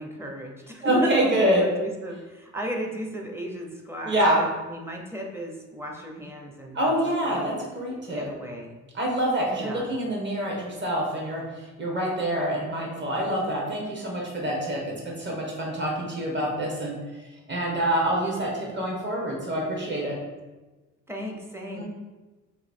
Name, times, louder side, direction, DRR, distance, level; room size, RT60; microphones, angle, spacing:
voice 1, 0.0-7.6 8.1-8.7 9.6-9.9 21.1-21.8, right 1 dB, 10° right, 0 dB, 0.7 m, -35 dB
voice 2, 0.8-1.7 4.0-4.4 6.7-8.3 8.9-17.0 17.5-20.2 21.7-21.8, right 1 dB, 35° right, -2 dB, 1.3 m, -26 dB
3.1 x 2.7 x 4.3 m, 1.2 s
cardioid pair, 90°, 30 cm